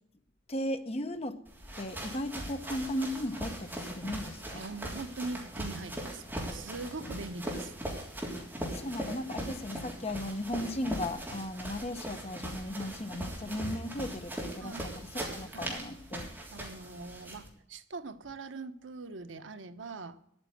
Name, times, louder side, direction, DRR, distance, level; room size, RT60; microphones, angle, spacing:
voice 1, 0.5-1.4 1.8-4.6 8.7-16.3, left 1 dB, 35° left, 1.0 m, -36 dB
sound 1, 1.5-17.5, right 1 dB, 10° right, 3.3 m, -40 dB
voice 2, 4.5-7.7 9.5-9.6 14.6-15.0 15.5-15.7 16.5-20.2, right 3 dB, 75° right, 1.0 m, -42 dB
11.0 x 8.9 x 7.8 m
head